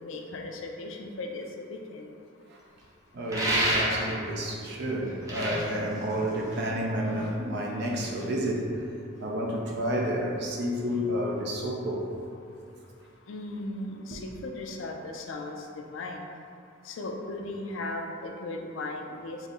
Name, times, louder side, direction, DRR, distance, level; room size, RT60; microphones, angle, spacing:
voice 1, 0.0-2.1 5.5-5.9 13.3-15.6 15.9-16.2 16.9-19.4, left 2 dB, 85° left, 2 dB, 0.4 m, -37 dB
voice 2, 3.1-8.7 9.2-12.0 14.1-14.2, equal, 60° right, -1 dB, 0.5 m, -30 dB
sound 1, 3.3-4.3 5.1-6.8, right 1 dB, 15° right, 0.6 m, -28 dB
4.0 x 2.0 x 3.5 m, 2.5 s
head